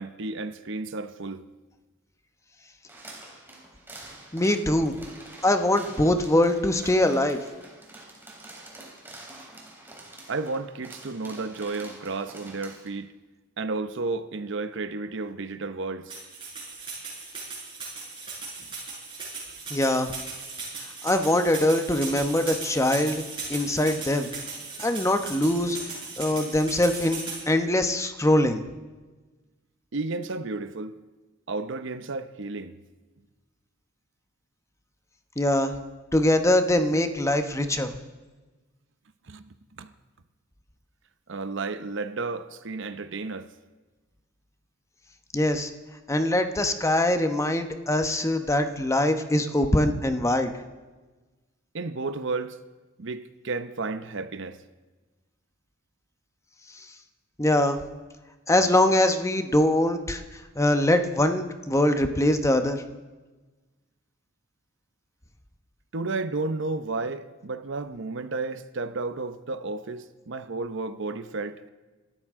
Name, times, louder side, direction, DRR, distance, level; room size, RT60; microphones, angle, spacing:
voice 1, 0.0-1.4 10.3-13.1 13.6-16.1 29.9-30.9 31.5-32.7 39.3-39.4 39.8-39.9 41.3-43.5 51.7-52.6 53.0-54.6 65.9-71.7, right 3 dB, 65° right, 0.8 m, -32 dB
sound 1, 2.9-12.9, right 2 dB, 10° right, 3.6 m, -46 dB
voice 2, 4.3-5.0 5.4-7.4 19.7-20.1 21.0-23.2 23.5-24.3 24.8-25.8 26.2-27.2 27.5-28.6 35.4-35.7 36.1-37.9 45.3-45.7 46.1-50.5 57.4-57.8 58.5-60.2 60.6-62.8, left 1 dB, 15° left, 1.0 m, -23 dB
sound 2, 16.1-27.4, right 4 dB, 25° right, 6.8 m, -37 dB
26.5 x 13.5 x 3.7 m
head